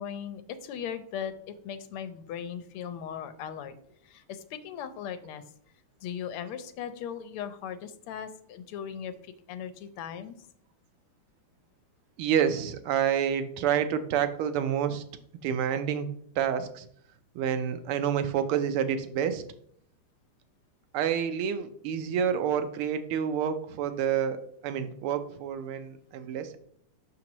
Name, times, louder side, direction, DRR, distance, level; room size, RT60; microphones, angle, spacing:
voice 1, 0.0-3.7 4.0-5.4 6.0-10.4, left 8 dB, 85° left, 10 dB, 1.5 m, -38 dB
voice 2, 12.2-15.0 15.4-16.1 16.4-16.9 17.3-19.4 20.9-26.6, right 8 dB, 85° right, 10 dB, 1.5 m, -28 dB
6.1 x 5.9 x 2.9 m, 0.65 s
omnidirectional pair, 2.4 m